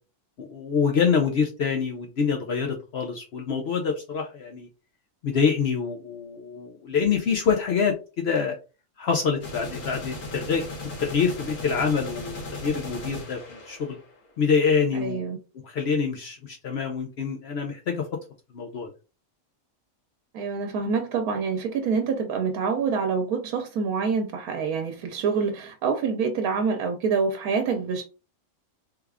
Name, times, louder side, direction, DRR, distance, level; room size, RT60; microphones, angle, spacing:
voice 1, 0.4-4.7 5.2-8.6 9.0-10.6 11.0-14.0 14.4-15.2 15.6-18.1 18.5-18.9, left 6 dB, 60° left, 0.7 m, -26 dB
sound 1, 9.4-14.3, left 2 dB, 85° left, 1.6 m, -37 dB
voice 2, 15.0-15.4 20.3-28.0, right 5 dB, 85° right, 1.1 m, -26 dB
3.4 x 2.3 x 3.4 m
omnidirectional pair, 1.5 m